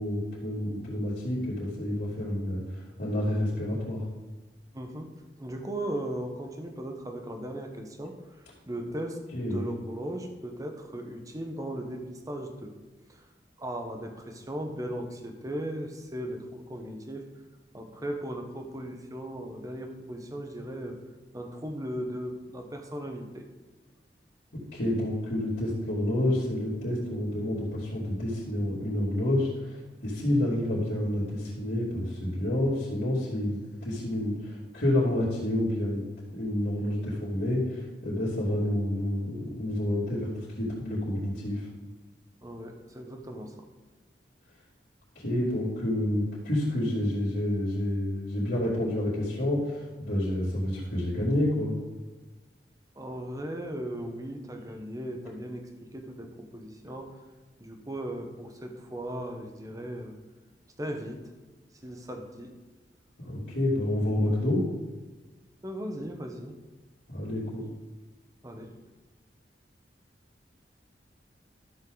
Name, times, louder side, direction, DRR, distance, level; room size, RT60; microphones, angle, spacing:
voice 1, 0.0-4.0 9.3-9.7 24.7-40.3 40.6-41.7 45.1-51.7 63.3-64.7 67.1-67.6, left 1 dB, 70° left, -11 dB, 3.1 m, -29 dB
voice 2, 4.7-8.2 8.7-9.2 9.5-12.7 13.1-13.3 13.6-17.3 17.7-21.0 21.3-23.5 42.4-43.7 52.9-57.1 57.6-60.2 60.8-61.3 61.8-62.5 65.6-66.6 68.4-68.8, right 1 dB, 20° right, 4 dB, 1.1 m, -37 dB
13.0 x 7.3 x 4.0 m, 1.3 s
head